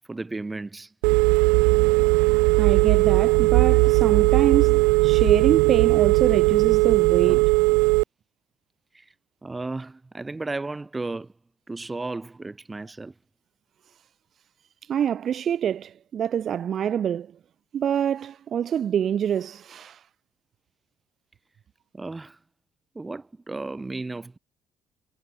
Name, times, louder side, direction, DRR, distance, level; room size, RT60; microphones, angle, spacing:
voice 1, 0.1-0.9 8.9-9.0 9.4-11.3 11.7-13.1 21.9-22.4 22.9-24.4, right 3 dB, 20° right, 4.9 m, -34 dB
Telephone, 1.0-8.0, right 30 dB, 75° right, 0.4 m, -18 dB
voice 2, 2.6-7.5 14.9-17.3 17.7-20.0, right 9 dB, 55° right, 1.5 m, -25 dB
hypercardioid pair, 50°, 0 cm